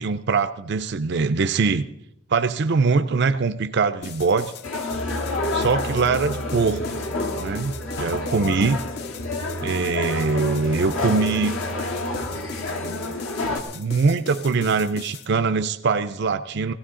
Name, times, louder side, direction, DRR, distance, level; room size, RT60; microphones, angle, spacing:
voice 1, 0.0-1.9 2.3-4.5 5.5-6.8 7.4-8.8 9.6-11.6 13.7-16.7, right 4 dB, 50° right, 10 dB, 0.4 m, -22 dB
sound 1, 4.0-15.3, left 6 dB, 50° left, 0.5 m, -39 dB
sound 2, 4.6-13.6, left 2 dB, 70° left, 1.6 m, -28 dB
17.5 x 15.5 x 3.8 m, 0.82 s
head